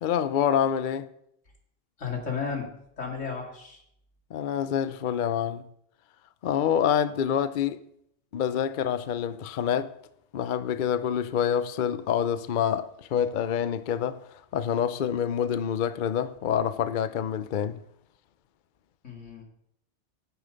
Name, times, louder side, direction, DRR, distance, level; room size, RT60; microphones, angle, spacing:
voice 1, 0.0-1.1 4.3-5.7 6.4-7.8 8.3-9.9 10.3-17.8, left 8 dB, 55° left, 0.6 m, -27 dB
voice 2, 2.0-2.7 3.0-3.8 19.0-19.4, left 5 dB, 80° left, 2.7 m, -33 dB
9.9 x 9.4 x 5.2 m
omnidirectional pair, 1.2 m